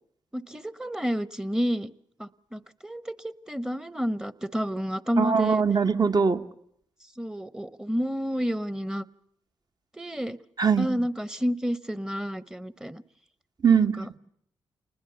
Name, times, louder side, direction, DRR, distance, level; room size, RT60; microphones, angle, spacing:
voice 1, 0.3-1.9 2.2-5.6 7.2-9.1 9.9-10.4 10.8-13.0 13.8-14.1, equal, 5° right, 15 dB, 1.0 m, -30 dB
voice 2, 5.2-6.4 10.6-10.9 13.6-13.9, right 6 dB, 40° right, 8 dB, 1.3 m, -21 dB
27.5 x 20.0 x 6.9 m, 0.70 s
supercardioid pair, 50°, 10 cm